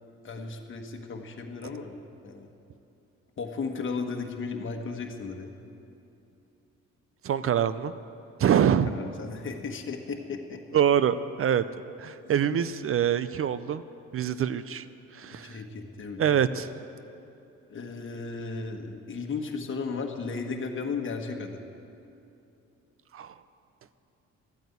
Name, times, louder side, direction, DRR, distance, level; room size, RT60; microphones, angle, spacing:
voice 1, 0.2-1.9 2.2-2.5 3.4-5.5 8.9-10.6 15.3-16.4 17.7-21.6, left 4 dB, 40° left, 2 dB, 1.4 m, -35 dB
voice 2, 7.2-7.9 8.4-8.9 10.7-11.6 12.0-13.8 14.1-14.9 15.1-15.6 16.2-16.7 23.1-23.3, right 9 dB, 45° right, 14 dB, 0.5 m, -25 dB
13.0 x 9.1 x 8.2 m, 2.8 s
cardioid pair, 90°, 30 cm